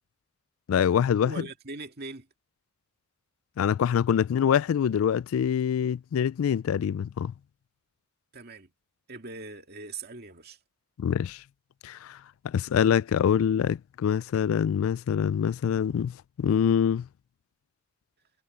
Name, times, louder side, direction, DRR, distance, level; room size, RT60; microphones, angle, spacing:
voice 1, 0.7-1.3 3.6-7.3 11.0-11.4 11.8-12.2 12.4-17.1, left 8 dB, 80° left, 0.3 m, -25 dB
voice 2, 1.2-2.3 8.3-8.7 9.1-10.6, right 3 dB, 50° right, 2.2 m, -41 dB
head